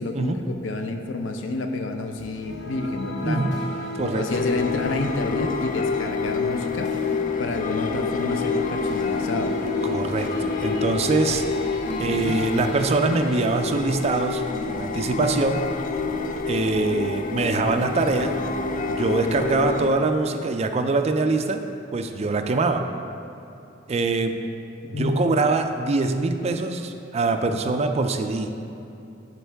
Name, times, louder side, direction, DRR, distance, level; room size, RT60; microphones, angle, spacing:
voice 1, 0.0-3.6 4.0-7.1 7.4-9.6 12.1-12.4 24.8-25.4, left 3 dB, 90° left, 5 dB, 0.6 m, -29 dB
sound 1, 2.2-14.5, left 1 dB, 65° left, 1.0 m, -39 dB
voice 2, 3.2-3.6 3.9-4.3 9.8-11.4 12.0-15.7 16.5-18.4 18.9-21.6 21.9-22.8 23.9-24.4 24.9-28.6, right 3 dB, 35° right, 6 dB, 0.4 m, -23 dB
sound 2, 4.3-19.9, left 4 dB, 45° left, 0.4 m, -27 dB
10.5 x 4.5 x 3.4 m, 2.8 s
head